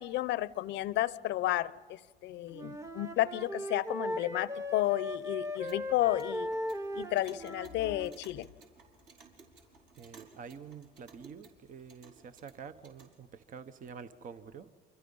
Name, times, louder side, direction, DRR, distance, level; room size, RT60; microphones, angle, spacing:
voice 1, 0.0-6.5 6.9-8.5, left 15 dB, 60° left, 19 dB, 0.7 m, -32 dB
Wind instrument woodwind instrument, 2.5-8.2, left 1 dB, 15° right, 1.1 m, -38 dB
Clock, 5.4-13.2, right 4 dB, 60° right, 5.0 m, -58 dB
voice 2, 10.0-14.7, right 6 dB, 40° right, 11 dB, 1.0 m, -48 dB
28.5 x 24.5 x 5.5 m, 1.4 s
supercardioid pair, 90°, 20 cm